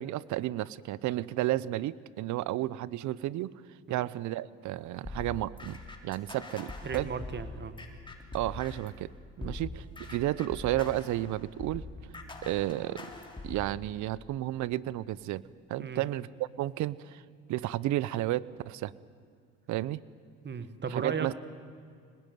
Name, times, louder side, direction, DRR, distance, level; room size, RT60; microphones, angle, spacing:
voice 1, 0.0-3.5 3.9-7.1 8.3-9.1 9.4-11.8 12.4-13.1 13.4-15.4 15.7-17.2 17.5-18.9 19.7-20.0 20.9-21.3, right 15 dB, 65° right, 20 dB, 0.8 m, -32 dB
sound 1, 5.0-9.0 9.4-13.8, left 2 dB, 15° left, 3.6 m, -43 dB
voice 2, 6.8-7.7 9.4-9.6 15.8-16.0 20.4-21.3, right 6 dB, 35° right, 11 dB, 1.8 m, -36 dB
24.5 x 20.0 x 9.3 m, 2.2 s
supercardioid pair, 80°, 31 cm